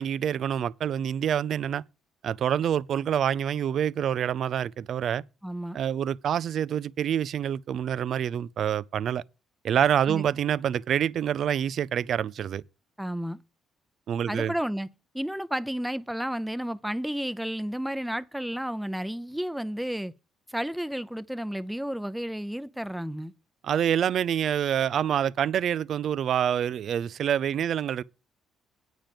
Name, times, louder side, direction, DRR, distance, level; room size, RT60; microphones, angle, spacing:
voice 1, 0.0-1.8 2.2-5.2 5.7-9.2 9.6-12.6 14.1-14.5 23.6-28.0, right 9 dB, 60° right, 0.4 m, -26 dB
voice 2, 5.4-5.8 10.1-10.3 13.0-13.4 14.3-14.9 15.1-20.1 20.5-23.3, equal, 5° right, 0.7 m, -32 dB
8.9 x 5.1 x 7.5 m
supercardioid pair, 65°, 0 cm